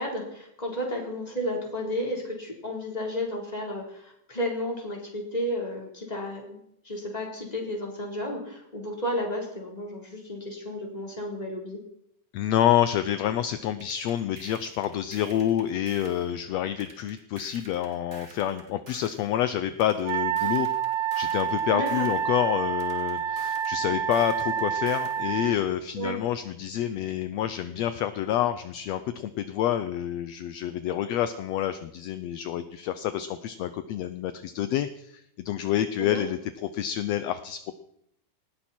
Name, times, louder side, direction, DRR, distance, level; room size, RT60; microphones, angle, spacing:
voice 1, 0.0-6.6 6.8-11.8 21.7-22.1 26.0-26.2 36.0-36.2, equal, 10° left, -1 dB, 3.9 m, -32 dB
voice 2, 12.3-20.7 21.2-36.4 36.7-37.7, left 11 dB, 75° left, 11 dB, 1.6 m, -28 dB
sound 1, 13.8-16.3 16.8-19.2 19.8-22.2 22.8-25.2, right 2 dB, 25° right, 2.6 m, -49 dB
Wind instrument woodwind instrument, 20.0-25.6, right 8 dB, 70° right, 2.1 m, -28 dB
19.5 x 16.0 x 4.4 m, 0.76 s
omnidirectional pair, 3.7 m